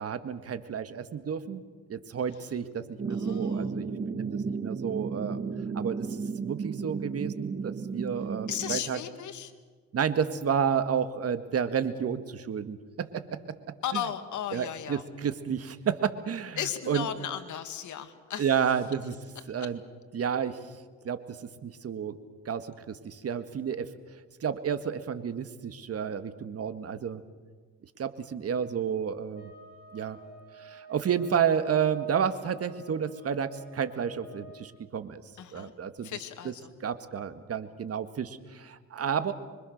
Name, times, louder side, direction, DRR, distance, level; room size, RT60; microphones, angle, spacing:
voice 1, 0.0-1.6 1.9-5.4 5.7-9.0 9.9-13.6 13.9-14.0 14.5-16.6 16.9-17.1 18.4-19.2 19.5-19.8 20.1-20.6 21.0-22.2 22.5-23.9 24.4-27.2 28.0-29.5 29.9-30.2 30.6-35.2 35.5-36.2 36.8-39.3, right 7 dB, 50° right, 10 dB, 1.8 m, -31 dB
sound 1, 3.0-8.8, right 5 dB, 35° right, 1.4 m, -33 dB
voice 2, 3.1-3.8 8.5-9.5 13.8-15.0 16.6-18.5 35.4-35.7 36.0-36.7, left 10 dB, 75° left, 8 dB, 2.3 m, -35 dB
sound 2, 29.3-34.7, right 1 dB, 30° left, 7.9 m, -51 dB
26.0 x 24.0 x 6.6 m, 1.5 s
cardioid pair, 90°, 30 cm